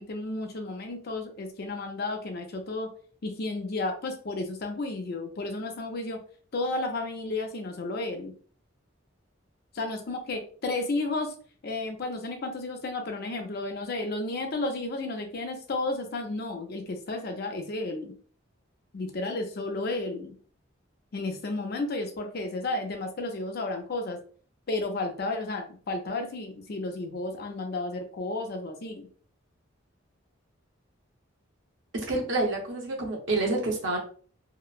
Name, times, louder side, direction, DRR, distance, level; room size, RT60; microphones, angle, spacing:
voice 1, 0.0-2.9 3.2-6.2 6.5-8.3 9.7-11.3 11.6-18.1 18.9-20.3 21.1-24.2 24.7-29.1, left 2 dB, 50° left, 3 dB, 0.5 m, -32 dB
voice 2, 31.9-34.0, right 2 dB, 65° right, 1 dB, 0.8 m, -28 dB
2.8 x 2.1 x 2.3 m, 0.43 s
head